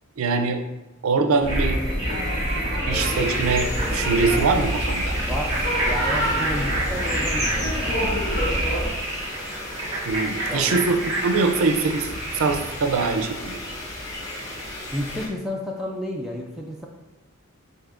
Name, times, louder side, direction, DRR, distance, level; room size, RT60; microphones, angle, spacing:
voice 1, 0.2-0.6 1.0-1.8 2.9-5.2 10.1-13.6, right 4 dB, 80° right, 7 dB, 0.5 m, -23 dB
sound 1, 1.4-8.9, equal, 45° left, 1.3 m, -27 dB
sound 2, 1.5-13.1, right 2 dB, 25° right, 0.9 m, -30 dB
sound 3, 2.9-15.3, left 1 dB, 15° left, 0.9 m, -34 dB
voice 2, 5.3-8.2 10.5-10.8 14.9-16.9, equal, ahead, -2 dB, 0.3 m, -31 dB
7.8 x 2.7 x 2.5 m, 1.1 s
head